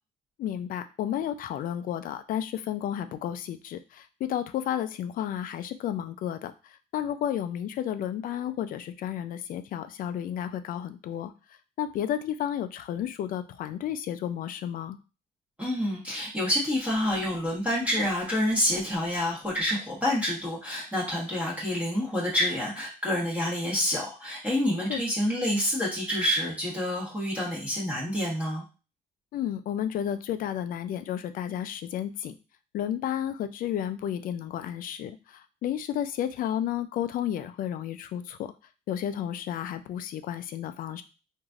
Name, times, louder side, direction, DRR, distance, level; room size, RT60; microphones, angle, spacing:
voice 1, 0.4-11.3 11.8-15.0 24.9-25.0 29.3-32.3 32.7-38.5 38.9-41.0, left 10 dB, 55° left, 10 dB, 0.4 m, -32 dB
voice 2, 15.6-28.6, left 1 dB, 10° right, -5 dB, 1.1 m, -28 dB
3.1 x 2.6 x 2.4 m, 0.32 s
cardioid pair, 110°, 17 cm